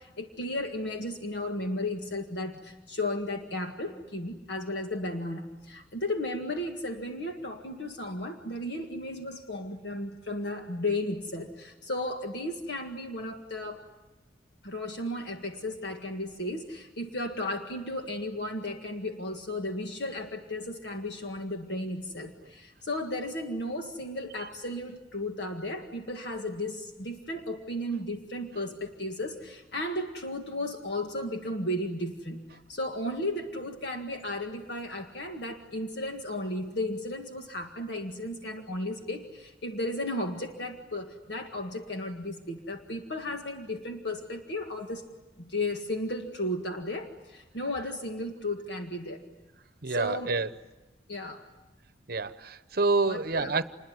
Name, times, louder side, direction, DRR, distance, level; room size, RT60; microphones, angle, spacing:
voice 1, 0.0-13.8 14.6-45.1 45.4-49.2 49.9-50.4 51.1-51.5 53.1-53.6, left 1 dB, 60° left, 3 dB, 1.9 m, -34 dB
voice 2, 49.8-50.5 52.1-53.6, right 3 dB, 55° right, 13 dB, 1.0 m, -27 dB
28.0 x 21.5 x 9.7 m, 1.1 s
head